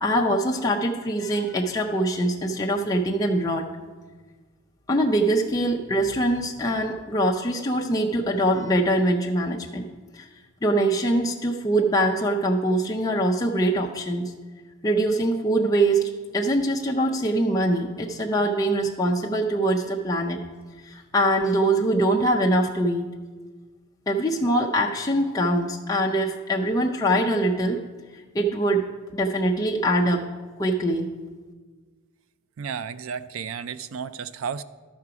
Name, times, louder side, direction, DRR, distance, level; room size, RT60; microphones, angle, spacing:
voice 1, 0.0-3.7 4.9-9.9 10.1-10.3 10.6-14.3 14.8-20.4 20.8-23.1 24.1-27.8 28.3-28.9 29.1-30.2 30.6-31.1, right 1 dB, 15° left, -1 dB, 0.5 m, -23 dB
voice 2, 32.6-34.6, right 6 dB, 70° right, 15 dB, 0.4 m, -33 dB
12.5 x 5.8 x 4.7 m, 1.4 s
head